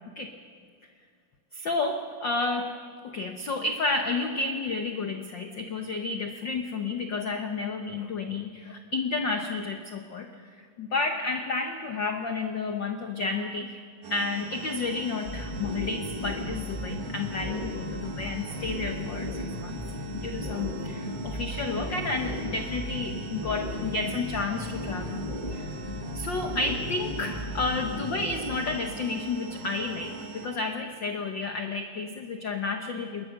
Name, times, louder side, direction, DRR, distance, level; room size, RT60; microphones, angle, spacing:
voice 1, 1.5-2.8 3.0-10.3 10.8-13.8 14.1-19.8 20.1-25.2 25.5-25.8 26.1-33.2, left 3 dB, 55° left, 5 dB, 1.3 m, -31 dB
sound 1, 14.0-30.5, right 3 dB, 70° right, 3.9 m, -42 dB
sound 2, 15.2-29.0, left 1 dB, 15° left, 1.8 m, -35 dB
28.5 x 22.0 x 6.7 m, 2.2 s
omnidirectional pair, 3.6 m